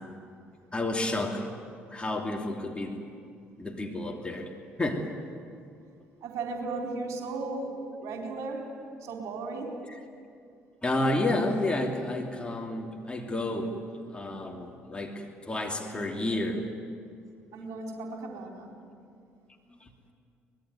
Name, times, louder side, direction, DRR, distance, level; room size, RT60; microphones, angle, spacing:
voice 1, 0.7-1.5 1.9-3.0 3.6-4.5 4.8-5.1 10.8-13.8 14.1-16.7 19.8-19.9, left 1 dB, 15° left, 1 dB, 3.0 m, -30 dB
voice 2, 6.2-8.7 9.0-9.8 17.5-18.7, right 3 dB, 50° right, 1 dB, 4.3 m, -36 dB
24.5 x 20.5 x 9.6 m, 2.3 s
figure-of-eight pair, 50°, 7 cm